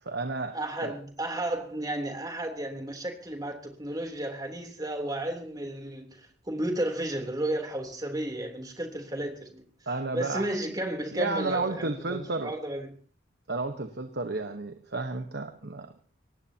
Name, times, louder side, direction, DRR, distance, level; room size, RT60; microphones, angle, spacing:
voice 1, 0.0-0.6 0.8-0.9 9.9-10.6 11.1-12.5 13.5-15.9, right 3 dB, 60° right, 7 dB, 1.2 m, -32 dB
voice 2, 0.5-9.7 10.1-12.9, right 1 dB, 20° right, 3 dB, 3.4 m, -33 dB
24.0 x 19.0 x 2.9 m, 0.43 s
head